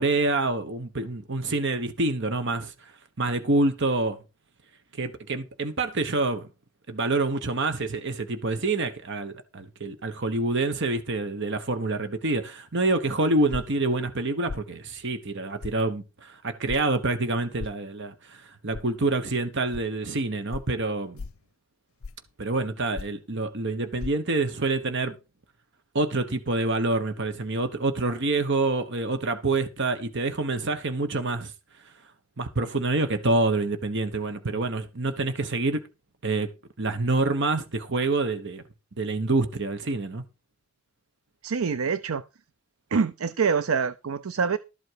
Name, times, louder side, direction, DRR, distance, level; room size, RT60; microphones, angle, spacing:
voice 1, 0.0-2.9 3.2-4.2 4.9-6.5 6.9-21.2 22.4-25.2 25.9-31.5 32.4-35.8 36.2-36.5 36.8-38.6 39.0-40.2, right 2 dB, 60° right, 1.2 m, -27 dB
sound 1, 13.5-13.8 14.5-14.7 15.6-15.8 16.7-16.8 17.6-17.8 18.7-18.9 19.7-19.8 20.5-20.7 21.2-21.4 22.0-22.3 22.9-23.2 24.0-24.1, left 4 dB, 75° left, 0.5 m, -36 dB
voice 2, 41.4-42.2 42.9-44.6, right 5 dB, 80° right, 0.5 m, -25 dB
13.0 x 7.9 x 4.7 m
head